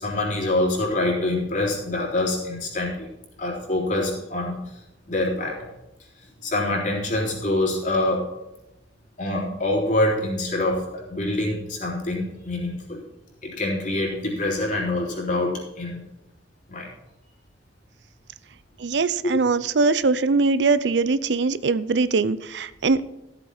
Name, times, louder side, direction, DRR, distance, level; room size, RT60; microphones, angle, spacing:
voice 1, 0.0-3.1 3.4-4.6 5.1-5.7 6.4-8.3 9.2-13.0 13.4-16.1 16.7-16.9 19.2-19.3, left 2 dB, 45° left, -3 dB, 3.9 m, -25 dB
voice 2, 18.8-23.0, right 4 dB, 75° right, 15 dB, 0.6 m, -21 dB
14.0 x 8.2 x 4.3 m, 0.95 s
head